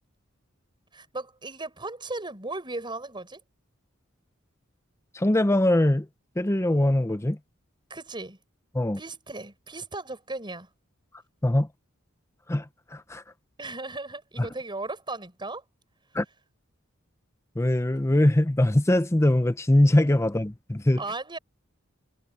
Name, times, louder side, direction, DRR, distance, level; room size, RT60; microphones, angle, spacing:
voice 1, 0.9-3.4 7.9-8.4 9.0-10.7 13.6-15.6 21.0-21.4, right 2 dB, 25° right, 6.4 m, -36 dB
voice 2, 5.1-6.1 6.4-7.4 8.7-9.0 11.4-11.7 12.5-13.2 16.1-16.2 17.6-21.0, left 1 dB, 15° left, 0.6 m, -22 dB
head